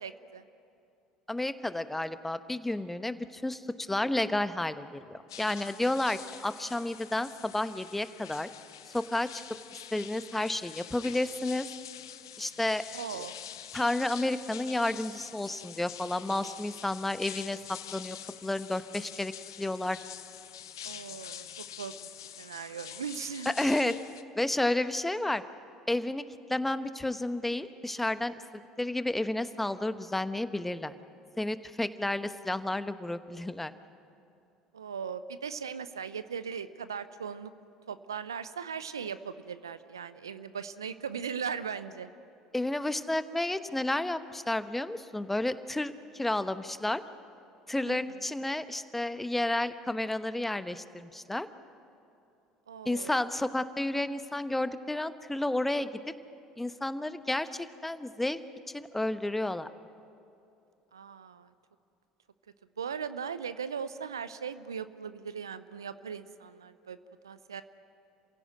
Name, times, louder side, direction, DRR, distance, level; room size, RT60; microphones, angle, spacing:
voice 1, 0.0-0.4 12.9-13.4 20.8-23.5 34.7-37.5 37.9-42.1 47.8-48.3 52.7-53.2 60.9-61.5 62.8-67.0 67.2-67.6, right 7 dB, 85° right, 13 dB, 0.7 m, -39 dB
voice 2, 1.3-8.5 8.9-9.4 9.9-11.7 12.4-12.8 13.7-18.2 18.4-19.3 19.6-20.0 23.6-24.0 24.4-25.4 25.9-26.2 26.5-28.3 28.8-30.9 31.4-33.7 42.5-47.0 47.7-51.5 52.8-55.9 56.6-58.4 58.7-59.7, left 1 dB, 10° left, 12 dB, 1.1 m, -31 dB
sound 1, 5.3-24.2, left 10 dB, 80° left, 0.8 m, -46 dB
27.5 x 16.5 x 9.2 m, 2.6 s
hypercardioid pair, 65°, 2 cm